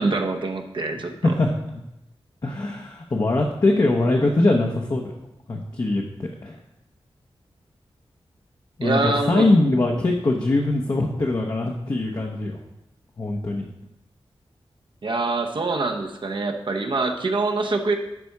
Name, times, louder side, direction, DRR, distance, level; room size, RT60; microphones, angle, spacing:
voice 1, 0.0-1.3 8.8-9.5 15.0-18.0, right 3 dB, 55° right, 3 dB, 0.9 m, -25 dB
voice 2, 0.9-1.8 2.4-5.1 5.5-6.6 8.8-12.6 13.2-13.7, left 2 dB, 40° left, 0 dB, 0.9 m, -22 dB
11.0 x 4.2 x 4.8 m, 0.88 s
wide cardioid pair, 100°, 10 cm